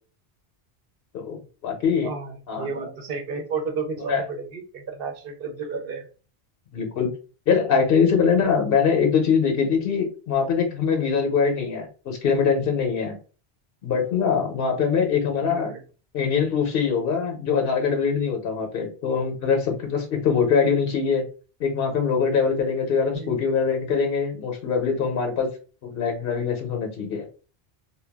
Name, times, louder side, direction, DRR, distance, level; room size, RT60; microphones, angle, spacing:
voice 1, 1.1-2.1 2.5-2.7 4.1-4.2 6.7-7.1 7.5-13.2 13.8-15.7 16.1-21.2 21.6-25.5 25.8-27.3, left 6 dB, 65° left, 4 dB, 0.8 m, -23 dB
voice 2, 2.0-6.0 15.4-15.8 23.1-23.4, right 4 dB, 65° right, 4 dB, 0.8 m, -32 dB
2.2 x 2.2 x 3.3 m, 0.36 s
omnidirectional pair, 1.1 m